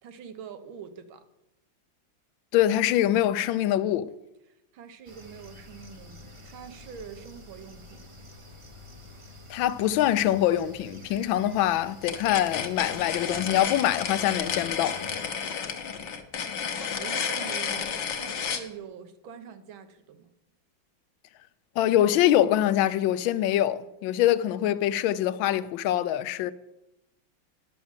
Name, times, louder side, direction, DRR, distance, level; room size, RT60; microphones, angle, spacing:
voice 1, 0.0-1.3 4.5-8.1 16.8-20.3, right 7 dB, 90° right, 1.8 m, -44 dB
voice 2, 2.5-4.1 9.5-15.0 21.8-26.5, left 12 dB, 80° left, 1.3 m, -24 dB
sound 1, 5.0-15.3, left 2 dB, 35° right, 0.5 m, -49 dB
sound 2, 12.0-18.7, left 6 dB, 65° left, 1.6 m, -31 dB
11.0 x 6.0 x 7.2 m
omnidirectional pair, 2.1 m